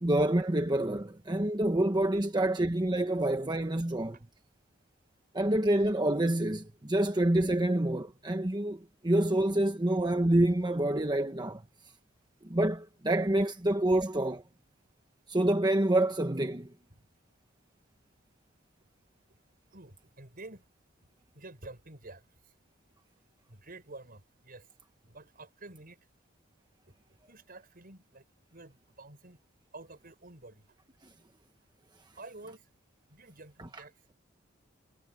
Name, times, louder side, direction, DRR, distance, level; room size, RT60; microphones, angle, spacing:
voice 1, 0.0-4.2 5.3-11.6 12.4-14.4 15.3-16.7, right 1 dB, 20° right, 1.1 m, -27 dB
voice 2, 19.7-20.6 21.3-22.2 23.5-24.7 25.0-26.0 27.3-28.2 28.5-29.4 29.7-30.6 32.1-32.7 33.1-33.9, right 2 dB, 50° right, 6.7 m, -49 dB
head